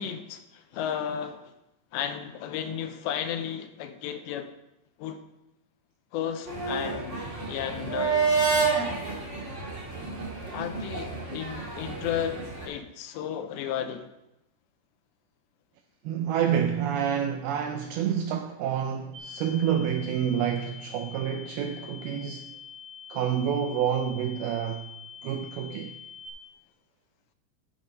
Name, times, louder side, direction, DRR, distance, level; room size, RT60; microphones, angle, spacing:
voice 1, 0.0-1.5 1.9-4.5 5.0-5.2 6.1-7.2 7.5-8.4 10.5-14.1, left 9 dB, 90° left, 2.9 m, -33 dB
sound 1, 6.5-12.6, right 4 dB, 30° right, 1.4 m, -29 dB
voice 2, 16.0-22.5 23.1-24.9 25.2-26.0, right 8 dB, 85° right, 2.2 m, -28 dB
sound 2, 19.1-26.3, left 7 dB, 60° right, 2.6 m, -45 dB
10.0 x 8.1 x 5.3 m
omnidirectional pair, 5.1 m